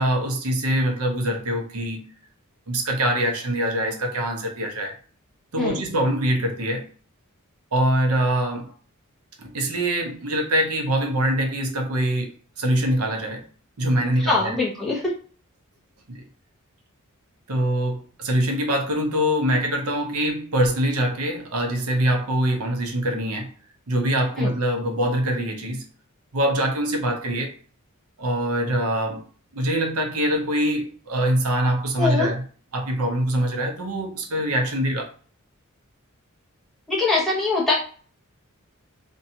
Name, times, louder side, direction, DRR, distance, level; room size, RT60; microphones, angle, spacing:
voice 1, 0.0-2.1 2.7-4.9 5.5-6.9 7.7-8.7 9.4-13.5 13.8-14.6 16.1-16.2 17.5-23.5 23.9-25.8 26.3-27.6 28.2-29.2 29.5-32.4 32.7-35.1, right 1 dB, 90° right, 0.7 m, -24 dB
voice 2, 14.2-15.0 24.4-24.5 32.0-32.3 36.9-37.7, left 3 dB, ahead, 0.7 m, -22 dB
2.6 x 2.2 x 2.7 m
head